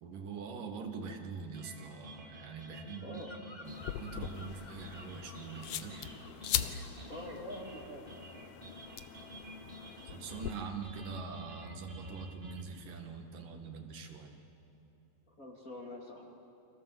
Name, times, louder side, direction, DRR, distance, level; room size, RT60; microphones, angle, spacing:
voice 1, 0.0-3.2 3.6-6.2 10.1-14.4, right 5 dB, 75° right, 4 dB, 3.5 m, -44 dB
sound 1, 1.5-12.6, right 1 dB, 25° right, 1.3 m, -50 dB
Bird vocalization bird call bird song, 2.9-6.5 6.7-7.1, left 2 dB, 60° left, 0.5 m, -54 dB
voice 2, 3.0-3.4 6.3-6.4 7.1-8.1 15.3-16.3, left 1 dB, 30° left, -1 dB, 2.2 m, -45 dB
sound 2, 3.7-10.5, left 10 dB, 75° left, 1.4 m, -41 dB
30.0 x 24.5 x 7.6 m, 2.9 s
omnidirectional pair, 3.9 m